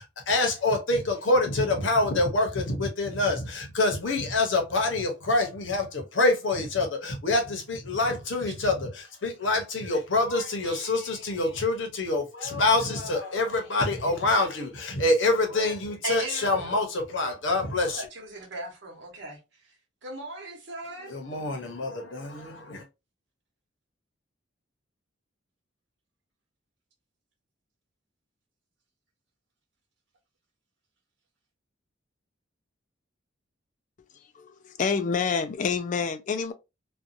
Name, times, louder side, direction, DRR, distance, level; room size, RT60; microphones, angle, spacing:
voice 1, 0.0-18.1 21.1-22.8, left 2 dB, 75° left, 0.8 m, -26 dB
voice 2, 16.0-16.7 17.7-21.2, right 2 dB, 65° right, 1.1 m, -38 dB
voice 3, 34.3-36.5, left 5 dB, 40° left, 0.3 m, -28 dB
2.6 x 2.3 x 2.4 m
head